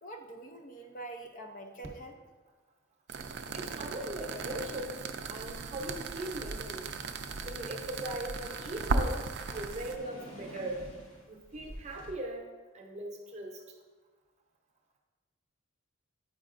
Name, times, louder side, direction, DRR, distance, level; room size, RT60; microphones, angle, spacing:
voice 1, 0.0-2.2, right 2 dB, 40° left, 4 dB, 0.4 m, -45 dB
sound 1, 3.1-10.0, right 3 dB, 55° right, 0.3 m, -36 dB
voice 2, 3.5-6.9 7.4-10.8 11.3-12.5 12.7-13.6, right 1 dB, 35° right, 0 dB, 0.7 m, -40 dB
sound 2, 6.8-12.1, equal, 80° left, 1.3 m, -50 dB
8.3 x 5.1 x 2.5 m, 1.3 s
head